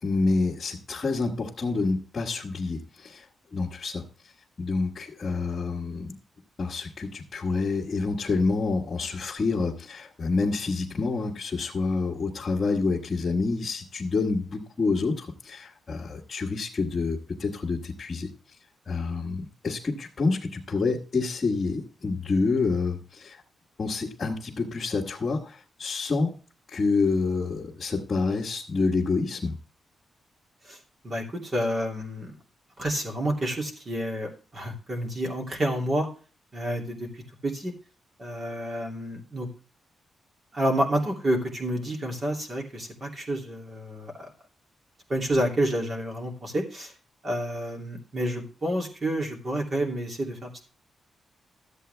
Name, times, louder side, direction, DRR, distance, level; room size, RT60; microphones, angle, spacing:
voice 1, 0.0-3.2 3.5-4.0 4.6-6.2 6.6-18.3 18.8-23.4 23.8-26.3 26.7-29.6, left 3 dB, 35° left, -5 dB, 1.7 m, -28 dB
voice 2, 31.0-32.3 32.8-36.1 36.5-37.7 38.2-39.5 40.5-44.3 45.1-46.9 47.2-50.6, right 1 dB, 35° right, 1 dB, 2.8 m, -29 dB
13.0 x 8.2 x 3.4 m, 0.36 s
wide cardioid pair, 130°, 0 cm